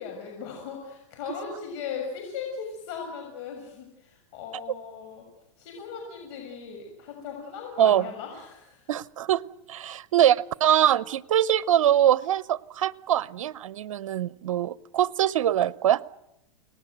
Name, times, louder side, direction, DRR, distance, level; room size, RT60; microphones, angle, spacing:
voice 1, 0.0-5.3 5.6-8.9, left 6 dB, 55° left, 2 dB, 6.9 m, -38 dB
voice 2, 8.9-9.4 9.7-16.0, right 11 dB, 80° right, 18 dB, 0.9 m, -23 dB
29.0 x 19.5 x 8.1 m, 0.88 s
hypercardioid pair, 125°, 17 cm